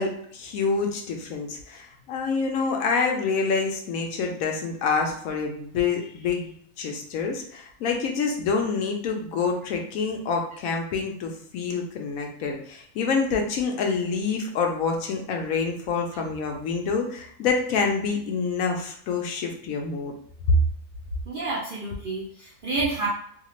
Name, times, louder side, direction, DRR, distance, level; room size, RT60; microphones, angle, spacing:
voice 1, 0.0-20.1, left 5 dB, 75° left, 2 dB, 1.0 m, -27 dB
voice 2, 21.3-23.1, right 3 dB, 55° right, -5 dB, 0.6 m, -29 dB
2.8 x 2.4 x 3.0 m, 0.63 s
omnidirectional pair, 1.5 m